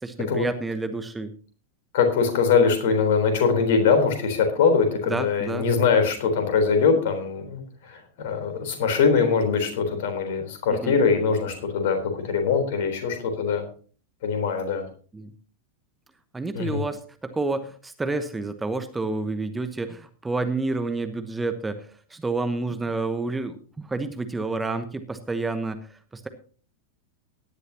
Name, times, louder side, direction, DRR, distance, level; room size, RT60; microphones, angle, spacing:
voice 1, 0.0-1.3 5.1-5.6 10.7-11.0 15.1-15.3 16.3-26.3, right 3 dB, 10° right, 10 dB, 1.1 m, -29 dB
voice 2, 1.9-7.6 7.9-13.6 14.2-14.9 16.5-16.8, left 5 dB, 55° left, 6 dB, 3.8 m, -22 dB
17.5 x 11.5 x 2.9 m, 0.40 s
figure-of-eight pair, 90°, 0 cm